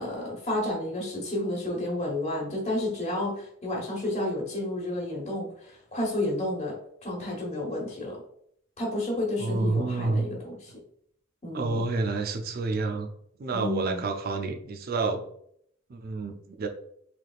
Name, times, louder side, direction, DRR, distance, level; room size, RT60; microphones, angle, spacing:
voice 1, 0.0-6.8 7.0-8.2 8.8-10.7 11.4-11.8 13.5-14.0, left 1 dB, 35° left, -2 dB, 1.2 m, -31 dB
voice 2, 9.4-10.3 11.5-13.1 13.4-15.2 15.9-16.7, right 3 dB, 50° right, 5 dB, 0.5 m, -29 dB
3.3 x 3.3 x 2.3 m, 0.66 s
head